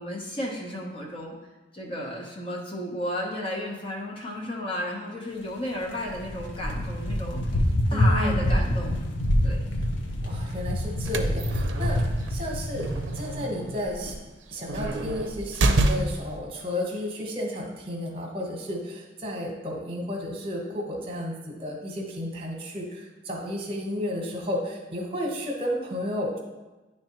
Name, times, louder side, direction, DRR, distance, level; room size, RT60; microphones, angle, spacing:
voice 1, 0.0-1.3 1.7-7.6 7.9-8.9 9.4-9.6, left 1 dB, 30° left, -2 dB, 0.8 m, -33 dB
sound 1, 5.8-13.4, left 1 dB, 85° left, 0.7 m, -26 dB
voice 2, 7.9-8.6 10.2-12.0 12.3-12.9 13.1-14.1 14.5-26.4, left 1 dB, 30° right, 0 dB, 1.1 m, -32 dB
sound 2, 10.8-16.4, right 2 dB, 80° right, 0.5 m, -29 dB
10.0 x 3.4 x 3.0 m, 1.1 s
head